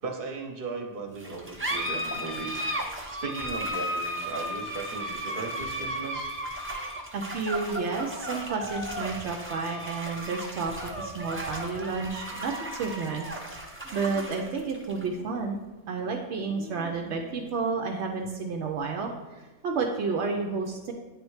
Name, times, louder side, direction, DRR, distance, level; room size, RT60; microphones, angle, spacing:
voice 1, 0.0-2.6 3.1-6.3, right 4 dB, 50° right, 3 dB, 1.1 m, -37 dB
sound 1, 1.2-18.1, right 1 dB, 15° right, 0.6 m, -35 dB
voice 2, 7.1-13.3 13.6-15.6 15.9-20.9, right 4 dB, 75° right, 2 dB, 0.9 m, -31 dB
9.2 x 3.1 x 4.7 m, 1.2 s
omnidirectional pair, 1.2 m